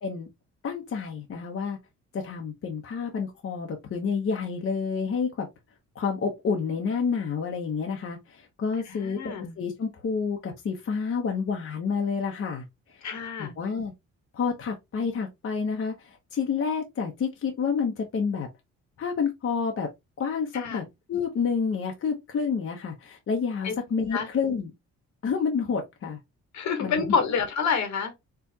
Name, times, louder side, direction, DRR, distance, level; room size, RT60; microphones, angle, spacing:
voice 1, 0.6-1.8 2.1-5.5 5.9-12.6 12.9-13.0 13.4-13.9 14.3-18.5 19.0-19.9 20.2-24.7 25.2-26.2 26.8-27.1, left 5 dB, 45° left, 0.9 m, -29 dB
voice 2, 8.9-9.5 13.0-13.5 20.5-20.8 23.6-23.7 24.1-24.3 26.5-28.1, left 6 dB, 70° left, 1.3 m, -28 dB
4.5 x 2.4 x 2.7 m
cardioid pair, 90°, 30 cm